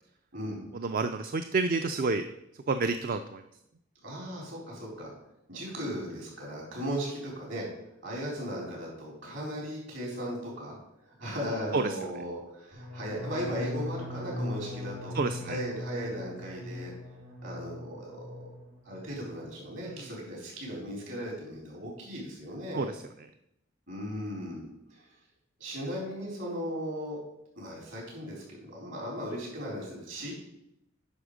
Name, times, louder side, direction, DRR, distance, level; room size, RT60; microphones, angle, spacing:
voice 1, 0.7-2.2 2.7-3.4 11.7-11.9 15.1-15.6 19.8-20.0 22.7-22.9, right 3 dB, 45° right, 9 dB, 0.4 m, -29 dB
voice 2, 4.0-5.1 5.5-7.7 8.0-10.7 11.2-15.2 15.4-16.9 17.4-18.2 18.8-22.9 23.9-24.7 25.6-27.2 27.5-28.4 28.7-30.3, equal, 65° right, -3 dB, 4.3 m, -37 dB
sound 1, 12.7-18.6 18.9-19.4 19.7-20.1, left 1 dB, 85° right, 3.2 m, -39 dB
9.8 x 6.1 x 5.1 m, 0.82 s
head